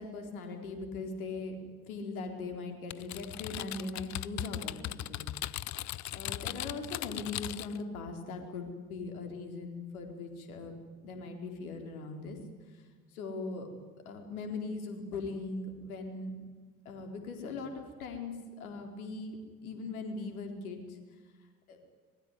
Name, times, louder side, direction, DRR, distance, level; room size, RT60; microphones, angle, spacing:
voice 1, 0.0-1.6 1.9-5.3 6.1-10.7 11.0-12.4 13.1-13.7 14.1-16.3 16.8-20.8 21.7-21.8, left 3 dB, 75° left, 5 dB, 4.2 m, -40 dB
Typing, 2.9-7.8, left 14 dB, 40° left, 0.8 m, -38 dB
25.5 x 21.0 x 10.0 m, 1.4 s
figure-of-eight pair, 60°, 43 cm